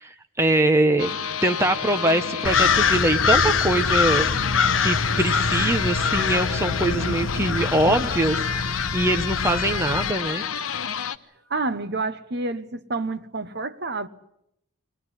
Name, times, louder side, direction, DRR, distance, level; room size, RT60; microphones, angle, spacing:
voice 1, 0.0-1.1 1.4-4.3 4.8-10.4, right 1 dB, 10° right, 1.0 m, -23 dB
sound 1, 1.0-11.2, left 7 dB, 85° left, 1.0 m, -30 dB
sound 2, 2.4-10.1, left 5 dB, 65° left, 1.0 m, -24 dB
voice 2, 11.5-14.1, right 3 dB, 50° right, 1.1 m, -28 dB
23.5 x 18.5 x 9.9 m
head